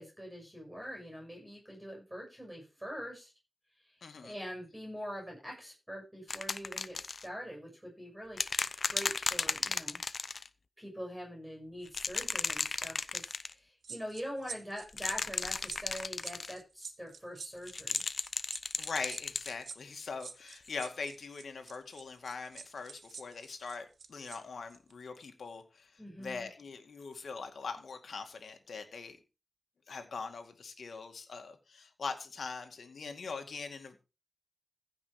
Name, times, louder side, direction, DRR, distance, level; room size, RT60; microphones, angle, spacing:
voice 1, 0.0-3.3 3.9-4.0 4.2-8.4 8.9-10.0 10.8-18.0 26.0-26.5, equal, 10° right, 1 dB, 7.1 m, -44 dB
voice 2, 4.0-4.3 18.8-25.9 26.2-29.2 29.9-34.0, left 4 dB, 85° left, 6 dB, 2.2 m, -42 dB
sound 1, 6.3-7.3 8.4-10.5 11.9-13.5 14.9-16.5 17.7-19.5 20.7-20.8, left 4 dB, 60° left, 0.7 m, -35 dB
sound 2, 13.8-24.4 24.7-24.9, right 5 dB, 85° right, 1.1 m, -47 dB
15.5 x 6.1 x 5.0 m, 0.30 s
wide cardioid pair, 85°, 0 cm